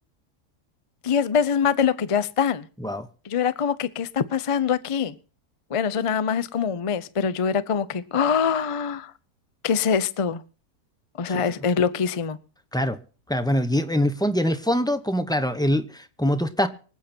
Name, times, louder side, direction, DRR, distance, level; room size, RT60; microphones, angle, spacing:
voice 1, 1.0-2.7 3.2-5.1 5.7-9.1 9.6-10.4 11.2-12.4, left 7 dB, 60° left, 0.3 m, -24 dB
voice 2, 13.3-16.7, equal, 5° left, 0.7 m, -24 dB
24.5 x 8.4 x 4.4 m
omnidirectional pair, 1.7 m